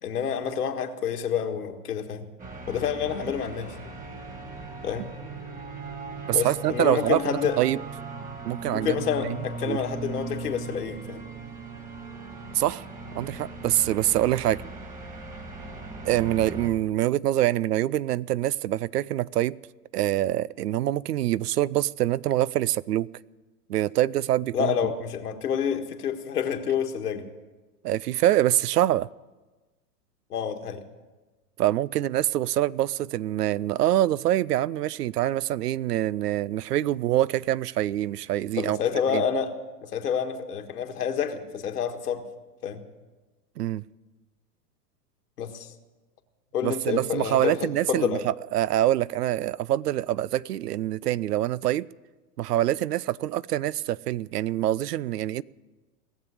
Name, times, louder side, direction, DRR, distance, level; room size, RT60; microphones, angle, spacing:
voice 1, 0.0-2.3 2.7-3.8 4.8-5.1 6.3-7.6 8.7-11.2 24.5-27.2 30.3-30.8 38.5-39.5 39.8-42.2 42.6-42.8 45.4-45.7 46.5-48.2, left 8 dB, 80° left, 5 dB, 1.7 m, -28 dB
sound 1, 2.4-16.7, right 4 dB, 15° right, 2.4 m, -38 dB
voice 2, 6.3-7.8 8.4-9.0 9.2-9.8 12.5-12.8 13.1-14.6 16.0-19.6 19.9-23.1 23.7-24.7 27.8-29.1 31.6-38.8 39.1-39.2 43.6-43.8 46.6-51.9 52.4-55.4, right 13 dB, 80° right, 23 dB, 0.5 m, -25 dB
18.0 x 7.4 x 9.8 m, 1.2 s
hypercardioid pair, 110°, 46 cm